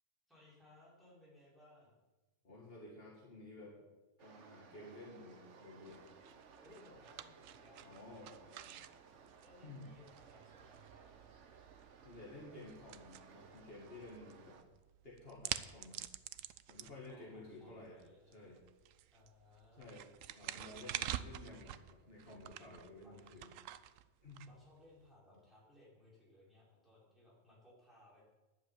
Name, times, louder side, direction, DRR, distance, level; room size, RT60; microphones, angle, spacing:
voice 1, 0.3-1.9 6.6-8.0 8.2-8.9 9.4-11.1 17.1-18.5 19.1-20.0 20.6-20.9 23.0-23.1 24.4-28.2, left 1 dB, ahead, -7 dB, 5.2 m, -63 dB
voice 2, 2.4-3.8 4.2-6.1 7.8-8.3 9.6-9.9 12.0-14.6 15.0-16.0 16.7-18.0 18.3-18.6 19.8-20.1 20.4-23.5 24.2-24.5, left 2 dB, 50° left, -4 dB, 2.5 m, -53 dB
sound 1, 4.2-14.6, right 5 dB, 70° right, 1.3 m, -60 dB
sound 2, 5.9-25.1, right 11 dB, 85° right, 1.0 m, -49 dB
11.0 x 7.2 x 9.0 m, 1.1 s
omnidirectional pair, 1.3 m